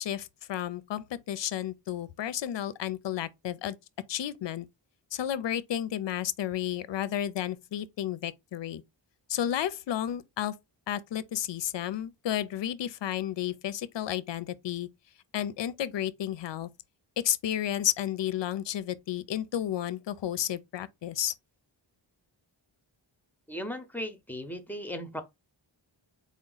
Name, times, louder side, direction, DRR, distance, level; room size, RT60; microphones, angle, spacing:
voice 1, 0.0-3.8 4.1-4.7 5.1-8.8 9.3-10.6 10.9-14.9 15.3-16.7 17.2-21.3, left 11 dB, 60° left, 0.5 m, -32 dB
voice 2, 23.5-25.2, equal, 5° left, 0.6 m, -37 dB
3.9 x 2.0 x 3.8 m
wide cardioid pair, 75°, 49 cm